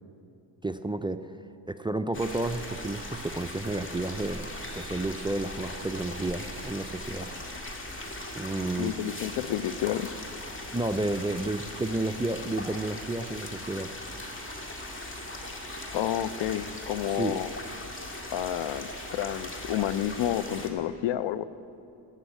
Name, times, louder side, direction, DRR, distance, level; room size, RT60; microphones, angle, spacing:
voice 1, 0.6-1.3 1.7-7.3 8.3-9.0 10.7-13.9 17.1-17.4, right 2 dB, 10° right, 9 dB, 0.4 m, -31 dB
sound 1, 2.1-20.7, left 1 dB, 30° left, 1.9 m, -39 dB
voice 2, 8.8-10.1 15.9-17.5 18.3-21.4, left 11 dB, 80° left, 15 dB, 0.6 m, -30 dB
14.5 x 6.2 x 8.6 m, 2.6 s
cardioid pair, 75°, 43 cm